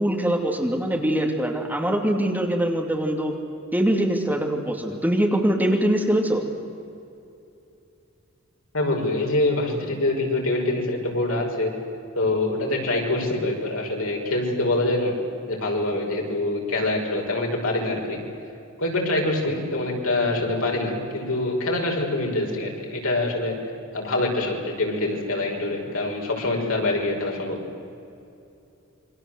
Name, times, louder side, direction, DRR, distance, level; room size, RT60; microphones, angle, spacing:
voice 1, 0.0-3.3 3.7-6.4, right 1 dB, 10° right, 1 dB, 2.7 m, -23 dB
voice 2, 8.7-11.7 12.2-15.1 15.5-18.2 18.8-23.6 23.9-27.6, left 2 dB, 75° left, 0 dB, 5.8 m, -25 dB
28.0 x 24.0 x 8.0 m, 2.7 s
head